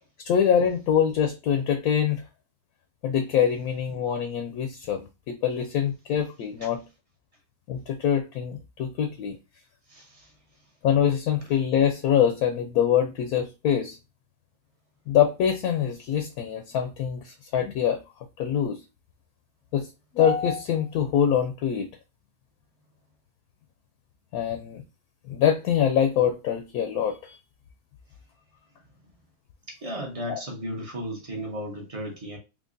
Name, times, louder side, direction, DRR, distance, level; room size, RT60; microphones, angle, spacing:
voice 1, 0.2-2.2 3.0-6.8 7.7-9.4 10.8-14.0 15.1-18.0 18.4-18.8 19.7-21.9 24.3-24.8 25.3-27.4 30.3-30.4, left 8 dB, 70° left, 1.0 m, -24 dB
voice 2, 29.7-32.4, equal, 30° right, 0.7 m, -34 dB
3.7 x 3.0 x 2.6 m
omnidirectional pair, 1.8 m